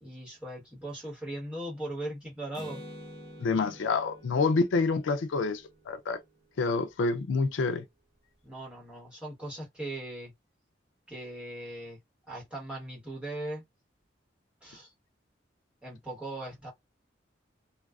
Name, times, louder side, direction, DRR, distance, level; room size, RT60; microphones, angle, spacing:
voice 1, 0.0-2.8 8.4-10.3 11.1-12.0 12.3-13.6 14.6-14.9 15.8-16.7, right 1 dB, 5° right, 1.2 m, -39 dB
Acoustic guitar, 2.5-6.2, equal, 20° left, 0.9 m, -48 dB
voice 2, 3.4-6.2 6.6-7.8, left 4 dB, 85° left, 0.4 m, -27 dB
2.3 x 2.3 x 2.3 m
head